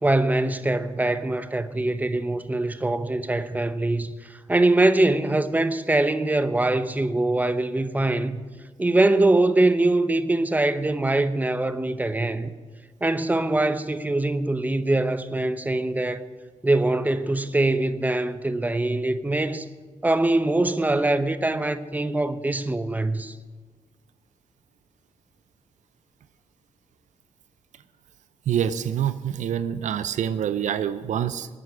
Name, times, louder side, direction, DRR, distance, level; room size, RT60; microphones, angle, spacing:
voice 1, 0.0-8.4 8.8-12.5 13.0-16.2 16.6-19.7 20.0-23.3, right 2 dB, 15° right, 0.8 m, -23 dB
voice 2, 28.5-31.5, right 9 dB, 75° right, 0.6 m, -26 dB
20.5 x 9.3 x 4.9 m
cardioid pair, 60°, 13 cm